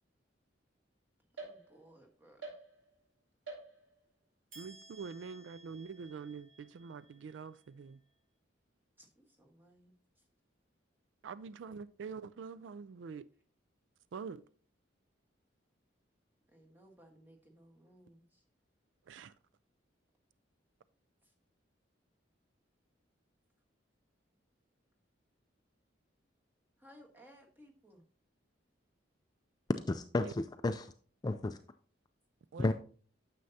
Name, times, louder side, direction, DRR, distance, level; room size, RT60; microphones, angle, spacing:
voice 1, 1.4-2.5 9.0-9.9 16.5-18.4 26.8-28.0, equal, 10° right, 1.3 m, -60 dB
sound 1, 1.4-2.0 2.4-3.1 3.5-4.1 4.5-8.0, right 3 dB, 85° right, 2.9 m, -52 dB
voice 2, 4.6-8.0 11.2-13.2 14.1-14.4 19.1-19.3 30.2-30.3 32.5-32.7, right 5 dB, 70° right, 0.3 m, -45 dB
voice 3, 29.9-30.9 31.2-31.6 32.6-32.7, left 2 dB, 20° left, 0.3 m, -32 dB
9.5 x 6.8 x 2.8 m
head